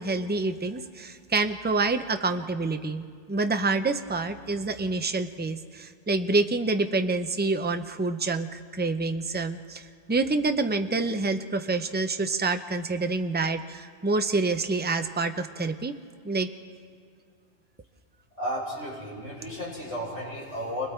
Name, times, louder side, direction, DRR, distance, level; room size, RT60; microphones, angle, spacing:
voice 1, 0.0-15.9 16.2-16.5, right 3 dB, 10° right, 7 dB, 0.5 m, -27 dB
voice 2, 18.4-20.9, equal, 85° left, -5 dB, 6.6 m, -33 dB
29.5 x 24.0 x 4.5 m, 2.1 s
omnidirectional pair, 1.2 m